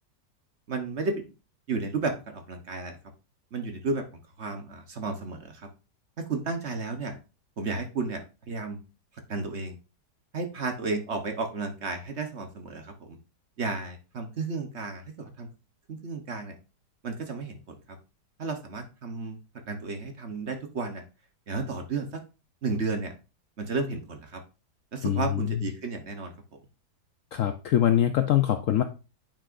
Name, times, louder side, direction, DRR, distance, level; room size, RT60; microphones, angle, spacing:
voice 1, 0.7-1.3 1.7-3.0 3.5-4.0 4.4-5.7 6.2-7.2 7.6-8.8 9.3-9.7 10.3-13.2 13.6-15.5 15.9-16.5 17.0-17.8 18.4-19.4 19.7-21.0 21.5-22.2 22.6-23.1 23.6-24.4 24.9-26.3, right 3 dB, 45° right, 5 dB, 1.1 m, -33 dB
voice 2, 25.0-25.6 27.3-28.8, left 11 dB, 70° left, 8 dB, 0.8 m, -23 dB
8.8 x 6.0 x 2.5 m, 0.32 s
omnidirectional pair, 1.8 m